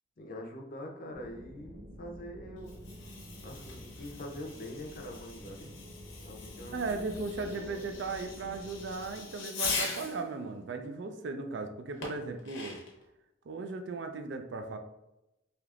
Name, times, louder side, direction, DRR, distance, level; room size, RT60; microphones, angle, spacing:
voice 1, 0.2-2.7 3.4-5.7 6.2-7.8, left 1 dB, 45° left, 2 dB, 0.5 m, -44 dB
sound 1, 1.1-9.1, equal, 20° right, 0.6 m, -49 dB
Fireworks, 2.6-10.2 12.0-13.0, left 4 dB, 85° left, 0.8 m, -41 dB
voice 2, 6.7-12.8 13.5-14.8, right 3 dB, 65° right, 7 dB, 0.4 m, -37 dB
3.4 x 2.8 x 2.4 m, 0.90 s
head